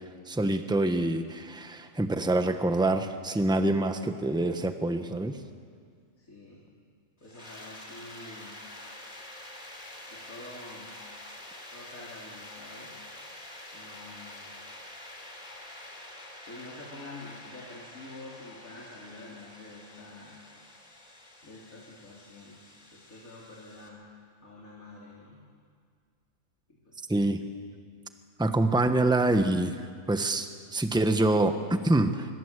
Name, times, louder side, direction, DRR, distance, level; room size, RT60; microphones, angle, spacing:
voice 1, 0.3-5.4 27.1-27.4 28.4-29.8 30.1-32.3, right 2 dB, 5° right, 7 dB, 1.1 m, -26 dB
voice 2, 6.2-6.7 7.2-8.6 10.1-10.9 11.7-13.0 13.7-14.5 16.5-20.4 21.4-22.6 22.9-24.1 24.4-25.4 26.7-27.1, left 2 dB, 80° left, -4 dB, 3.9 m, -47 dB
sound 1, 7.2-23.9, left 1 dB, 35° left, 3.3 m, -47 dB
25.0 x 24.5 x 8.2 m, 2.1 s
omnidirectional pair, 1.4 m